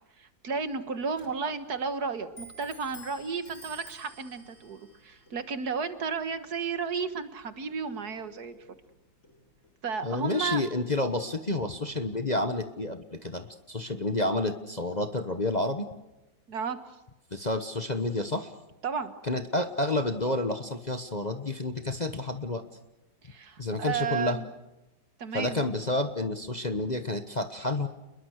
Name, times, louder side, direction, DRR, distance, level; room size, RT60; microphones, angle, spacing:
voice 1, 0.0-8.6 9.8-10.6 16.5-16.8 18.8-19.1 23.2-24.5 25.2-25.6, right 5 dB, 60° right, 10 dB, 1.9 m, -33 dB
Clock, 0.6-9.8, equal, 45° left, 3.4 m, -54 dB
voice 2, 10.0-15.8 17.3-18.5 19.3-22.6 23.6-24.4 25.3-27.9, left 2 dB, 25° left, 7 dB, 1.1 m, -30 dB
30.0 x 21.5 x 6.5 m, 0.96 s
omnidirectional pair, 1.9 m